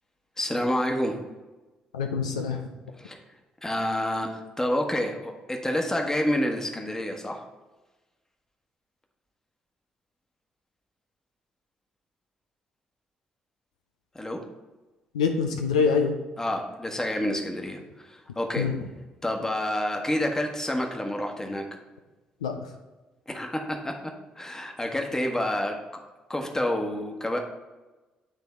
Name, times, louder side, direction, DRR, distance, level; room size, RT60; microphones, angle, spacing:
voice 1, 0.4-1.2 2.9-3.2 3.6-7.4 14.1-14.4 16.4-18.7 19.2-21.7 23.3-26.0 26.3-27.4, left 1 dB, 15° left, 2 dB, 1.2 m, -28 dB
voice 2, 1.9-2.6 15.1-16.2 18.6-18.9 22.4-22.7, left 5 dB, 80° left, 3 dB, 0.4 m, -25 dB
9.1 x 3.4 x 4.3 m, 1.2 s
figure-of-eight pair, 40°, 4 cm